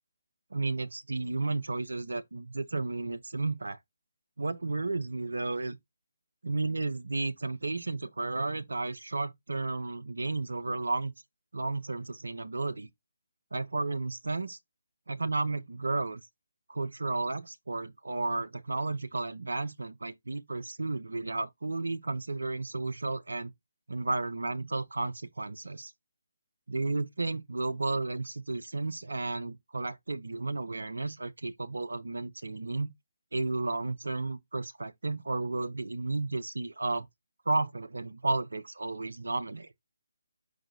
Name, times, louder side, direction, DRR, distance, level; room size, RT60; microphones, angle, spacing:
voice 1, 0.5-3.8 4.4-5.8 6.4-11.1 11.5-12.9 13.5-14.6 15.1-16.2 16.7-23.5 23.9-25.9 26.7-32.9 33.3-37.1 37.5-39.7, right 3 dB, 65° right, 0.5 m, -33 dB
4.8 x 2.5 x 4.2 m
figure-of-eight pair, 145°, 0 cm